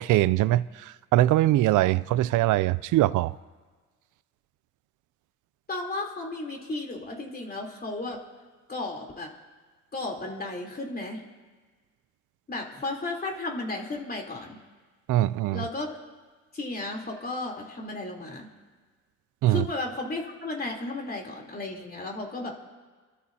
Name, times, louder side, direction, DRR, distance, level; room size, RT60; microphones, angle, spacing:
voice 1, 0.0-3.4 15.1-15.6 19.4-19.7, right 15 dB, 85° right, 0.4 m, -22 dB
voice 2, 5.7-8.2 8.7-9.3 9.9-11.2 12.5-14.6 15.5-15.9 16.5-18.5 19.5-22.5, left 2 dB, 30° left, 3.5 m, -34 dB
29.5 x 13.0 x 2.8 m
cardioid pair, 90°, 30 cm